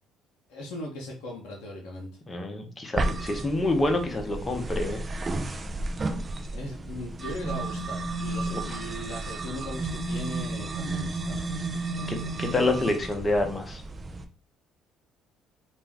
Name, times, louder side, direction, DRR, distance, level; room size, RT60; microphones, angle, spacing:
voice 1, 0.5-2.2 6.5-11.6 12.0-12.6, left 1 dB, 80° left, -1 dB, 0.6 m, -39 dB
voice 2, 2.3-5.0 8.5-8.6 12.1-13.8, left 2 dB, 25° left, 4 dB, 0.7 m, -27 dB
sound 1, 3.0-14.2, right 2 dB, 35° right, 0.4 m, -32 dB
2.5 x 2.2 x 3.4 m, 0.37 s
supercardioid pair, 70°, 0 cm